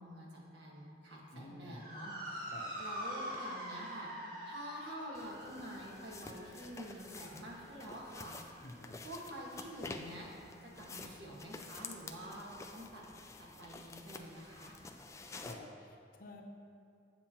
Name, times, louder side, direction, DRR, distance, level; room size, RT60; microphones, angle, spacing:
voice 1, 0.0-2.5 2.8-4.1 4.5-8.4 9.0-10.3 10.6-13.0 13.4-14.7, equal, 70° right, -4 dB, 1.5 m, -48 dB
voice 2, 1.3-1.8 2.5-2.7 8.6-9.0 15.4-16.4, left 1 dB, 50° left, 2 dB, 0.8 m, -50 dB
Motor vehicle (road) / Siren, 1.6-10.2, equal, 55° right, 1.5 m, -46 dB
sound 1, 2.8-2.9 3.3-3.5 5.1-15.6, left 3 dB, 15° left, 0.3 m, -50 dB
8.4 x 7.4 x 2.9 m, 2.3 s
head